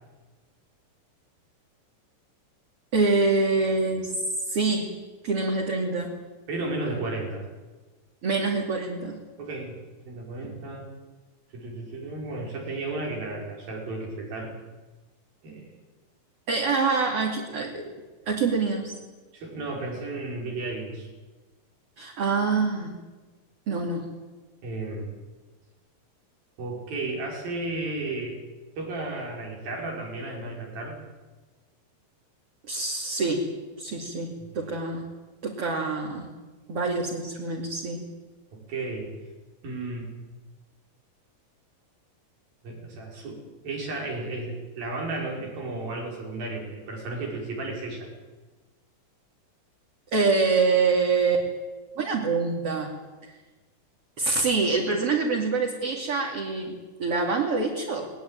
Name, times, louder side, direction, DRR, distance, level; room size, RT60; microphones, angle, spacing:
voice 1, 2.9-4.1 4.5-5.0 5.2-6.1 8.2-9.2 16.5-17.8 18.3-18.9 22.0-22.9 23.7-24.1 32.7-33.5 33.8-35.0 35.4-36.3 36.7-38.0 50.1-51.5 52.0-52.9 54.2-58.1, right 4 dB, 45° right, -1 dB, 3.4 m, -25 dB
voice 2, 6.5-7.5 9.4-9.8 10.1-10.9 11.5-14.5 15.4-15.7 19.3-21.1 24.6-25.1 26.6-28.4 28.8-31.0 38.5-39.1 39.6-40.1 42.6-48.1, right 2 dB, 85° right, 0 dB, 7.3 m, -33 dB
21.0 x 20.0 x 9.2 m, 1.2 s
omnidirectional pair, 4.0 m